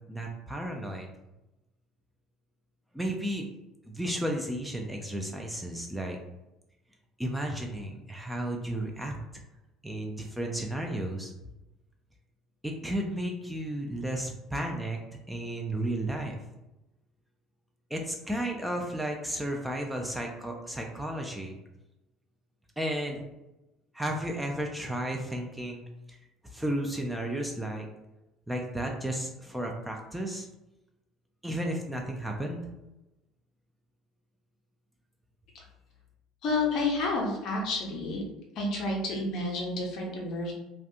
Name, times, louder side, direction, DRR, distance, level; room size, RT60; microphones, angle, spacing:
voice 1, 0.1-1.1 2.9-3.5 3.9-6.2 7.2-9.2 9.8-11.3 12.6-15.0 15.3-16.4 17.9-21.6 22.8-23.2 23.9-25.8 26.1-26.2 26.5-27.9 28.5-30.5 31.4-32.7, right 1 dB, 5° right, 1 dB, 0.4 m, -33 dB
voice 2, 36.4-38.2 38.5-40.5, left 2 dB, 50° left, 0 dB, 0.6 m, -30 dB
2.3 x 2.2 x 2.7 m, 0.96 s
figure-of-eight pair, 60°, 0 cm